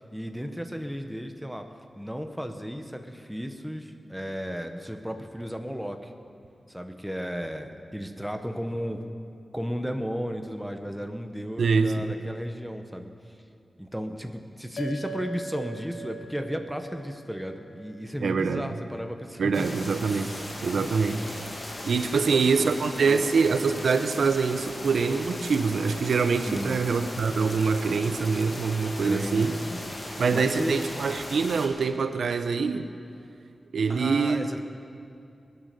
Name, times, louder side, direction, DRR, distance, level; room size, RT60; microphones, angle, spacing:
voice 1, 0.1-1.7 2.0-6.1 6.7-9.0 9.5-13.1 13.8-19.7 20.1-21.3 22.1-23.2 26.4-26.8 29.0-30.0 30.3-30.8 33.9-34.6, equal, ahead, 5 dB, 1.0 m, -34 dB
voice 2, 11.6-12.1 18.2-18.7 19.4-20.3 20.6-21.2 21.8-29.6 30.2-32.9 33.7-34.5, right 5 dB, 90° right, 9 dB, 0.7 m, -24 dB
sound 1, 14.8-19.4, right 2 dB, 80° left, 1.2 m, -42 dB
sound 2, 19.5-31.7, left 1 dB, 30° left, 2.1 m, -38 dB
21.5 x 9.4 x 6.7 m, 2.5 s
wide cardioid pair, 130°, 0 cm